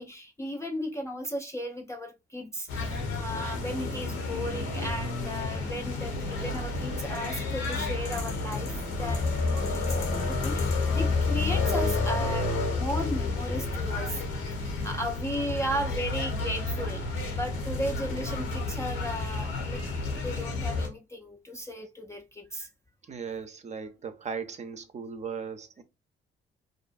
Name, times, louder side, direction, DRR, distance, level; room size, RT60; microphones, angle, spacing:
voice 1, 0.0-2.9 3.2-14.2 14.8-19.8 20.2-22.7, equal, 15° left, 0.4 m, -35 dB
sound 1, 2.7-20.9, left 3 dB, 85° left, 0.8 m, -30 dB
voice 2, 23.1-25.8, right 6 dB, 35° right, 0.5 m, -37 dB
2.6 x 2.3 x 2.4 m
cardioid pair, 90°, 20 cm